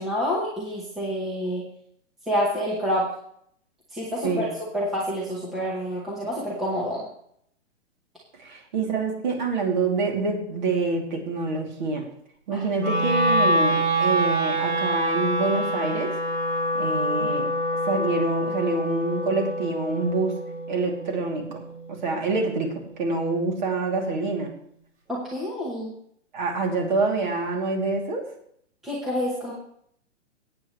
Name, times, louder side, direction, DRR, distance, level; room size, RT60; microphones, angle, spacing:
voice 1, 0.0-1.7 2.3-3.0 3.9-7.0 12.5-12.7 17.2-17.3 25.1-25.9 28.8-29.5, equal, ahead, -7 dB, 0.9 m, -28 dB
voice 2, 8.4-12.0 12.5-16.1 16.7-17.5 17.8-20.3 20.7-21.6 21.9-22.7 23.0-24.5 26.3-28.2, right 3 dB, 40° right, 1 dB, 2.8 m, -26 dB
Wind instrument woodwind instrument, 12.8-23.0, right 1 dB, 70° right, 3.9 m, -26 dB
18.5 x 9.0 x 3.1 m, 0.68 s
hypercardioid pair, 175°, 37 cm